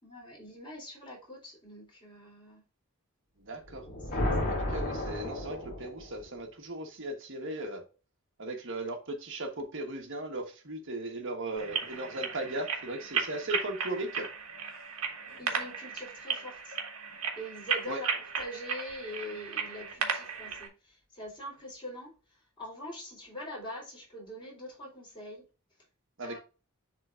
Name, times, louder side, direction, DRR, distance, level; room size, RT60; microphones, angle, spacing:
voice 1, 0.0-2.6 3.8-4.5 15.4-16.8 17.4-18.1 18.4-22.1 22.6-25.4 26.2-26.4, left 1 dB, 25° left, 3.5 m, -43 dB
voice 2, 3.4-3.8 4.5-7.8 8.4-14.3 17.9-18.0 26.2-26.4, right 1 dB, 60° right, 1.3 m, -37 dB
sound 1, 3.7-6.3, left 1 dB, 45° left, 2.4 m, -33 dB
sound 2, 11.6-20.7, right 6 dB, 80° right, 1.5 m, -35 dB
10.0 x 3.8 x 2.5 m
head